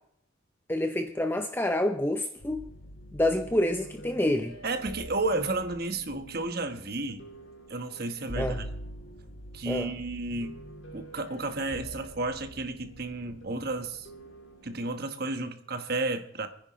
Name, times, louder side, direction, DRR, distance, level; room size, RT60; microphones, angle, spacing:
voice 1, 0.7-2.6 3.1-4.5 8.4-8.6 9.7-9.9, left 1 dB, 10° left, 6 dB, 0.6 m, -27 dB
sound 1, 2.4-15.0, equal, 60° left, 2.0 m, -45 dB
voice 2, 4.6-7.2 7.7-8.7 9.5-10.6 10.9-14.1 14.6-16.5, right 2 dB, 50° right, 7 dB, 1.3 m, -32 dB
28.5 x 10.0 x 3.1 m, 0.71 s
head